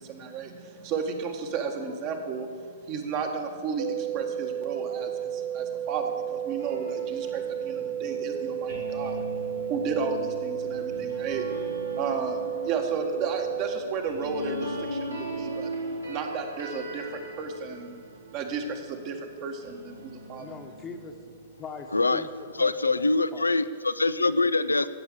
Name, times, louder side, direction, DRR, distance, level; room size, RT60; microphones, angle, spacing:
voice 1, 0.0-15.7 16.1-17.9 18.3-20.5, right 5 dB, 35° right, 4 dB, 1.7 m, -33 dB
sound 1, 3.8-13.8, right 9 dB, 50° right, 1.2 m, -32 dB
sound 2, 6.6-19.1 19.6-22.5, equal, 85° right, 3.3 m, -39 dB
voice 2, 20.4-21.1 21.6-22.3 22.6-23.5, left 5 dB, 20° left, 5 dB, 1.3 m, -41 dB
voice 3, 22.6-24.9, left 3 dB, 80° left, 15 dB, 0.5 m, -24 dB
16.5 x 7.1 x 7.6 m, 2.2 s
figure-of-eight pair, 110°, 0 cm